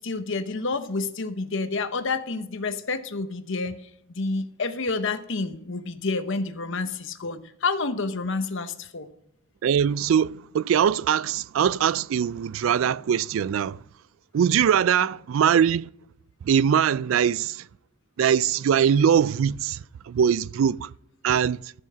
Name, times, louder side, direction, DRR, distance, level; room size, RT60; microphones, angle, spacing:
voice 1, 0.0-3.8 4.1-9.1, left 3 dB, 65° left, 1.0 m, -29 dB
voice 2, 9.6-13.8 14.3-15.9 16.4-17.6 18.2-19.8 20.1-20.9 21.2-21.6, right 8 dB, 70° right, 0.3 m, -22 dB
13.0 x 7.3 x 5.7 m
head